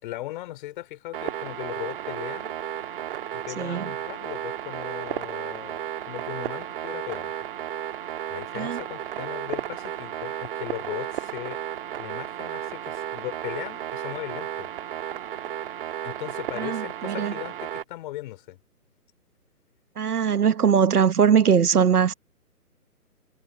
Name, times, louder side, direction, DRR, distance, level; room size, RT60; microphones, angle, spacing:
voice 1, 0.0-2.6 3.3-7.4 8.3-11.6 12.0-14.7 16.0-18.6, left 16 dB, 30° left, 3.7 m, -38 dB
sound 1, 1.1-17.8, right 11 dB, 35° right, 1.7 m, -33 dB
voice 2, 3.6-3.9 8.5-8.8 16.6-17.3 20.0-22.1, right 7 dB, 75° right, 1.4 m, -21 dB
hypercardioid pair, 145°, 46 cm